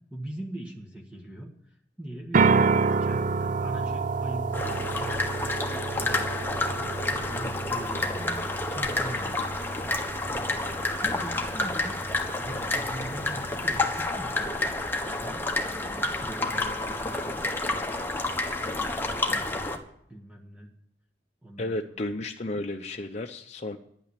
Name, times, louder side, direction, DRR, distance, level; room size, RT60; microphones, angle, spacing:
voice 1, 0.1-5.2 5.9-7.0 7.3-9.5 10.3-10.6 11.0-14.5 15.0-17.9 18.7-19.8 20.1-20.7 21.4-21.7, right 1 dB, 5° right, 1 dB, 1.5 m, -41 dB
sound 1, 2.3-14.1, right 4 dB, 50° right, 0.5 m, -30 dB
sound 2, 4.5-19.8, left 2 dB, 15° left, 1.4 m, -29 dB
voice 2, 21.6-23.8, left 2 dB, 40° left, 2 dB, 0.7 m, -33 dB
11.0 x 9.2 x 8.3 m, 0.72 s
head